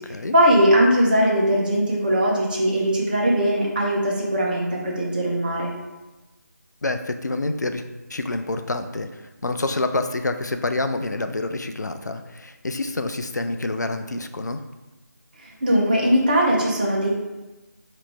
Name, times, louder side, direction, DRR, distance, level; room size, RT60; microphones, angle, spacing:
voice 1, 0.3-5.7 15.6-17.1, equal, 30° right, -2 dB, 0.7 m, -20 dB
voice 2, 6.8-7.8 8.1-14.6, left 2 dB, 70° left, 8 dB, 0.4 m, -27 dB
4.3 x 2.9 x 3.4 m, 1.1 s
figure-of-eight pair, 160°, 10 cm